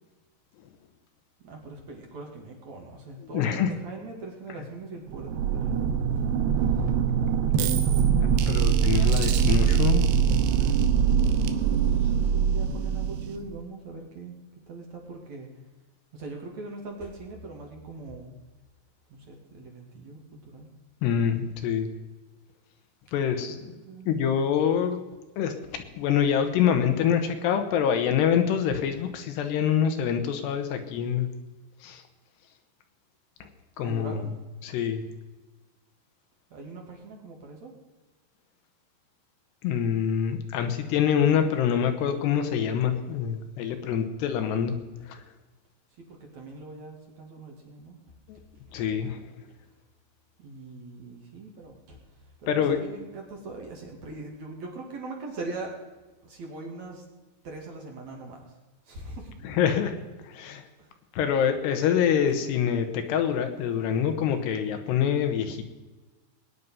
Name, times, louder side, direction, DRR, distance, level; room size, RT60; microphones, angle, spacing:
voice 1, 1.4-5.8 6.1-6.3 10.5-11.4 12.0-14.4 14.7-15.5 16.1-18.4 19.1-20.7 23.5-24.3 33.8-34.3 36.5-37.8 46.0-48.8 50.4-55.8 56.2-57.0 57.4-59.3 60.8-60.9, right 3 dB, 50° right, 0 dB, 3.0 m, -41 dB
voice 2, 3.3-3.7 8.2-10.1 21.0-21.9 23.1-23.6 24.1-25.0 25.4-31.3 31.8-32.0 33.4-33.5 33.8-34.3 34.6-35.0 39.6-44.8 45.1-45.2 48.3-48.4 48.7-49.2 52.5-52.8 59.4-60.0 60.2-60.6 61.1-65.6, left 8 dB, 80° left, 7 dB, 3.3 m, -25 dB
sound 1, 5.1-13.6, right 7 dB, 85° right, 3.0 m, -23 dB
20.0 x 9.7 x 5.5 m, 1.2 s
omnidirectional pair, 4.8 m